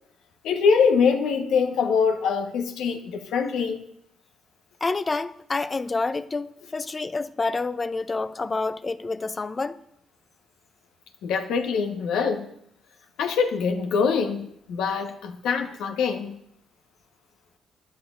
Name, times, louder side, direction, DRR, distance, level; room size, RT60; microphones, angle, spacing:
voice 1, 0.4-3.8 11.2-12.5 13.2-16.3, left 5 dB, 80° left, 1.2 m, -24 dB
voice 2, 4.8-9.8, left 3 dB, 30° left, 0.5 m, -28 dB
20.5 x 11.0 x 2.5 m
cardioid pair, 90°, 0 cm